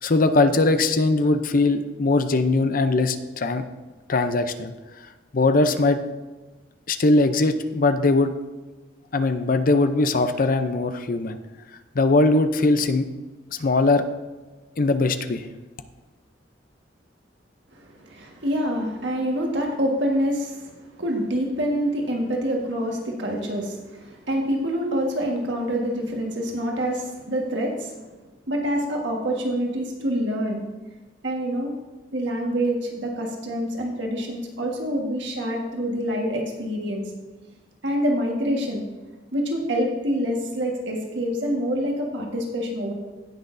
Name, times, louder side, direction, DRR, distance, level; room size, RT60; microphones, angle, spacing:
voice 1, 0.0-3.7 4.1-4.7 5.3-6.0 6.9-8.3 9.1-11.4 11.9-13.1 13.6-14.0 14.8-15.5, left 2 dB, 50° left, 9 dB, 0.6 m, -20 dB
voice 2, 17.7-28.0 28.5-30.6 31.2-31.7 32.1-37.0 37.8-38.8 39.3-42.9, equal, 80° right, 0 dB, 1.6 m, -26 dB
17.0 x 6.3 x 2.7 m, 1.2 s
head